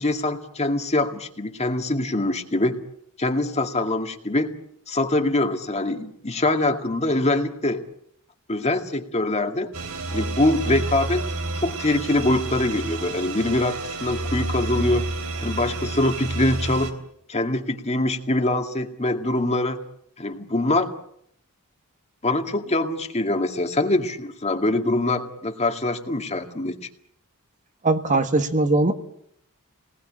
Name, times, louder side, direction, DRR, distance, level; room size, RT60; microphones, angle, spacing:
voice 1, 0.0-2.8 3.2-4.5 4.9-7.8 8.5-9.7 10.1-11.3 11.6-15.0 15.4-16.9 17.3-19.8 20.2-20.9 22.2-26.8, left 2 dB, 30° left, 6 dB, 2.2 m, -23 dB
sound 1, 9.7-16.9, right 2 dB, 85° right, 3.6 m, -30 dB
voice 2, 27.8-28.9, right 2 dB, 35° right, 8 dB, 1.6 m, -20 dB
29.0 x 20.0 x 8.8 m, 0.72 s
head